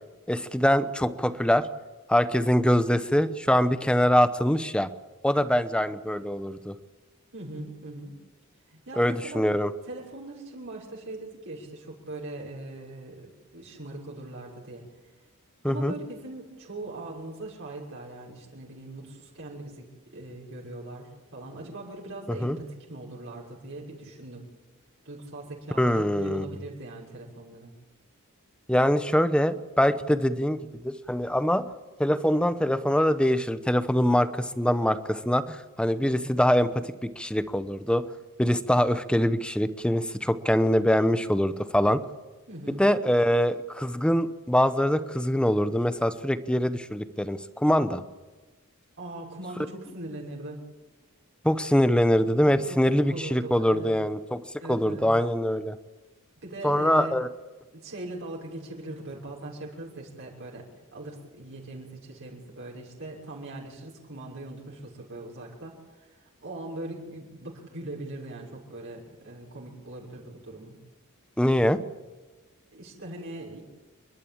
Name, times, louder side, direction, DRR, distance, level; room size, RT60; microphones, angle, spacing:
voice 1, 0.3-1.7 2.1-4.9 5.2-6.8 9.0-9.7 15.6-15.9 22.4-22.6 25.8-26.6 28.7-31.7 32.0-36.8 37.2-38.0 38.4-42.0 42.7-48.0 51.4-54.4 54.7-55.8 56.6-57.3 71.4-71.8, equal, 5° left, 12 dB, 0.9 m, -23 dB
voice 2, 7.3-8.2 8.7-9.4 9.8-14.8 15.6-19.9 20.1-24.5 25.0-27.7 36.0-36.3 42.5-42.9 49.0-50.6 52.5-52.8 53.1-53.9 54.6-55.1 56.4-57.2 57.7-60.6 60.9-70.8 72.7-73.6, right 2 dB, 60° right, -3 dB, 6.3 m, -40 dB
29.0 x 12.0 x 8.9 m, 1.2 s
head